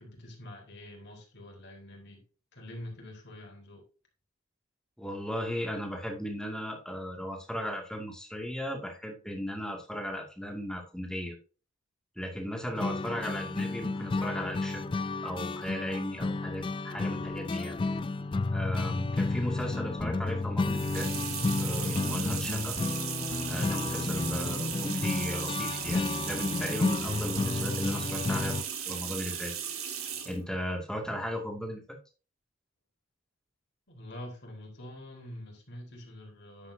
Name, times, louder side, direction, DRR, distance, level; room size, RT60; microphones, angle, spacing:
voice 1, 0.0-2.2 2.5-3.8 33.9-36.7, left 1 dB, 55° left, 0 dB, 3.7 m, -45 dB
voice 2, 5.0-11.3 12.2-14.9 15.2-17.8 18.5-21.1 21.6-22.8 23.5-28.6 28.9-29.5 30.2-31.8, equal, 5° left, 1 dB, 2.3 m, -36 dB
sound 1, 12.8-28.6, left 3 dB, 25° left, 0.3 m, -31 dB
sound 2, 20.6-30.4, right 8 dB, 85° right, 1.8 m, -36 dB
10.5 x 7.6 x 2.8 m, 0.36 s
head